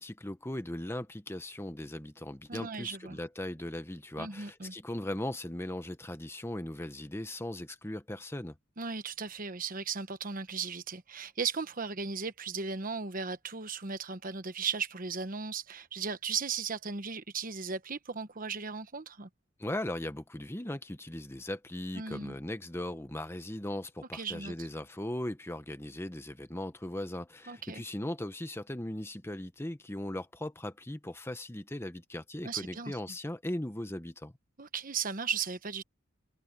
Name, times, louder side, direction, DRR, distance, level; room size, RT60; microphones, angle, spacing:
voice 1, 0.0-8.5 19.6-34.3, left 1 dB, 10° left, 1.0 m, -38 dB
voice 2, 2.5-3.2 4.2-4.7 8.8-19.3 21.9-22.3 24.1-24.7 27.5-27.8 32.4-33.0 34.6-35.8, right 5 dB, 45° right, 1.1 m, -36 dB
head